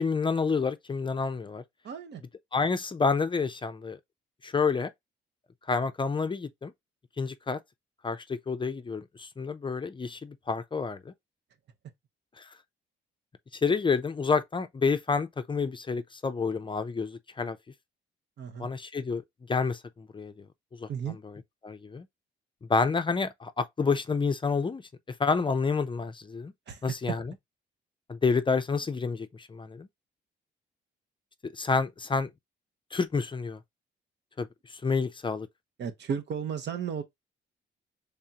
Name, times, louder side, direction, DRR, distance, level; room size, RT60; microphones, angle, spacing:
voice 1, 0.0-1.6 2.5-4.0 4.4-4.9 5.7-6.7 7.2-7.6 8.0-11.0 12.4-12.5 13.6-17.6 18.6-19.2 19.5-20.3 20.8-20.9 21.6-22.0 22.7-24.8 25.2-26.5 26.8-27.2 28.1-29.9 31.4-32.3 32.9-33.6 34.4-34.5 34.8-35.5, left 4 dB, 25° left, 0.5 m, -29 dB
voice 2, 1.8-2.2 18.4-18.7 20.9-21.2 26.7-26.9 35.8-37.0, right 7 dB, 60° right, 1.0 m, -34 dB
3.6 x 3.5 x 2.8 m
cardioid pair, 90°, 20 cm